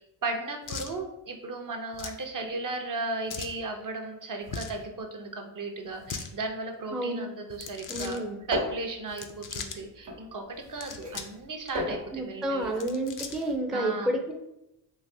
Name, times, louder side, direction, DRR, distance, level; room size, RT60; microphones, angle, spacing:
voice 1, 0.2-8.2 8.5-12.8 13.7-14.1, right 2 dB, 45° right, 3 dB, 0.7 m, -35 dB
sound 1, 0.7-0.9 1.9-2.2 3.3-3.6 4.4-4.8 5.9-6.3 7.5-8.2 9.1-9.8 10.6-11.4 11.7-11.8 12.6-13.6, left 5 dB, 45° left, 0.5 m, -39 dB
voice 2, 6.9-7.3 7.9-8.5 12.1-14.3, right 1 dB, ahead, 1 dB, 0.5 m, -30 dB
sound 2, 8.4-10.7 10.9-12.9 13.2-13.3, equal, 80° right, 1.0 m, -35 dB
3.9 x 2.9 x 2.7 m, 0.86 s
cardioid pair, 60°, 45 cm